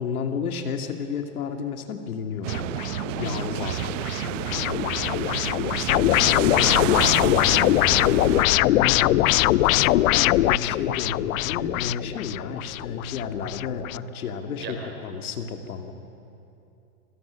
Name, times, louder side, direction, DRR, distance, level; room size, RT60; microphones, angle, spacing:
voice 1, 0.0-4.1 6.5-6.9 7.8-15.9, left 6 dB, 90° left, 5 dB, 2.3 m, -32 dB
sound 1, 2.4-8.5, right 14 dB, 60° right, 0.7 m, -30 dB
sound 2, 2.5-14.0, left 16 dB, 70° left, 0.5 m, -22 dB
voice 2, 5.4-6.1 6.4-7.5 14.6-14.9, right 5 dB, 25° right, 3 dB, 3.5 m, -40 dB
27.5 x 19.0 x 6.3 m, 2.7 s
supercardioid pair, 150°, 42 cm